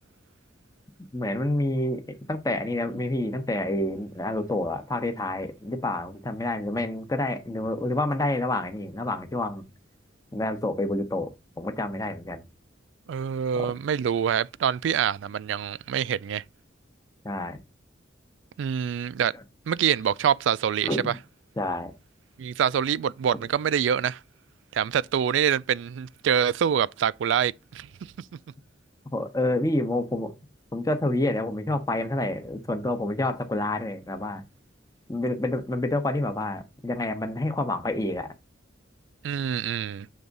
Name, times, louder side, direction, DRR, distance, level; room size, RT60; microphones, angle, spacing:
voice 1, 1.1-9.7 10.3-12.4 13.5-13.8 17.2-17.6 20.8-21.2 21.6-21.9 29.1-30.3 30.7-34.4 35.1-38.3, left 1 dB, 20° left, 0.9 m, -28 dB
voice 2, 13.1-16.4 18.6-19.3 19.7-21.1 22.4-24.2 24.7-27.9 39.2-40.1, right 8 dB, 75° right, 0.3 m, -25 dB
7.0 x 3.5 x 5.2 m
head